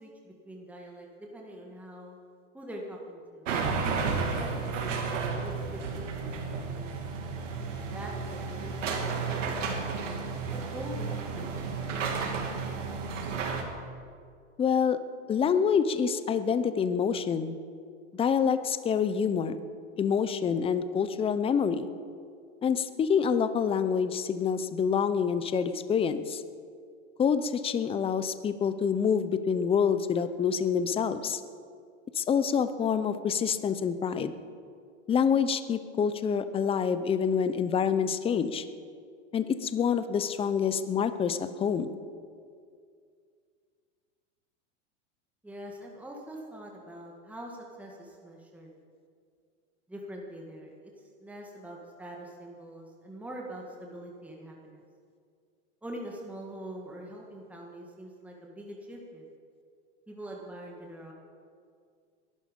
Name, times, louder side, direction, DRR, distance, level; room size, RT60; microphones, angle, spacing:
voice 1, 0.0-2.2 2.5-3.5 4.4-5.0 5.3-7.2 7.9-10.0 10.5-12.8 45.4-48.7 49.9-54.8 55.8-59.3 60.1-61.1, right 1 dB, 5° right, -1 dB, 1.9 m, -44 dB
sound 1, 3.4-13.6, right 4 dB, 90° right, 2.5 m, -32 dB
voice 2, 14.6-15.0 15.3-17.5 18.1-19.6 20.0-21.9 22.6-26.4 27.2-31.4 32.1-34.3 35.1-38.7 39.3-42.0, left 7 dB, 15° left, 12 dB, 0.7 m, -27 dB
21.0 x 11.5 x 5.4 m, 2.2 s
supercardioid pair, 130°, 36 cm